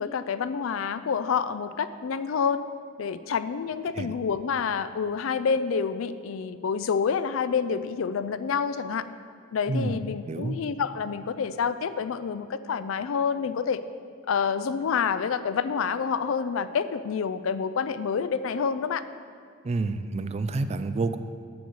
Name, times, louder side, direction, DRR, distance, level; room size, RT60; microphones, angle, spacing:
voice 1, 0.0-2.6 3.0-9.0 9.5-13.8 14.3-19.0, left 6 dB, 70° left, 13 dB, 0.4 m, -28 dB
voice 2, 9.7-10.0 10.3-10.6 19.6-21.2, right 3 dB, 30° right, 11 dB, 0.3 m, -28 dB
7.8 x 6.4 x 6.9 m, 2.2 s
head